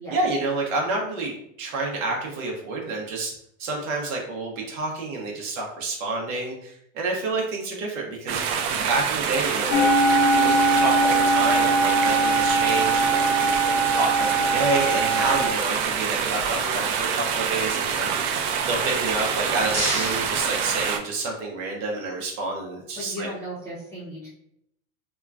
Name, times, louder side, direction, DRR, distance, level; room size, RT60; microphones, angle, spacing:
voice 1, 0.1-3.3 3.6-8.4 8.8-9.9 10.3-18.4 18.6-23.3, right 3 dB, 65° right, -1 dB, 0.8 m, -29 dB
sound 1, 8.3-21.0, right 7 dB, 50° right, 0.5 m, -26 dB
sound 2, 9.7-15.5, right 2 dB, 50° left, 0.6 m, -21 dB
sound 3, 19.2-21.4, right 1 dB, 15° right, 0.9 m, -32 dB
voice 2, 23.0-24.3, equal, 5° left, -10 dB, 0.6 m, -35 dB
2.9 x 2.2 x 2.4 m, 0.73 s
supercardioid pair, 120°, 41 cm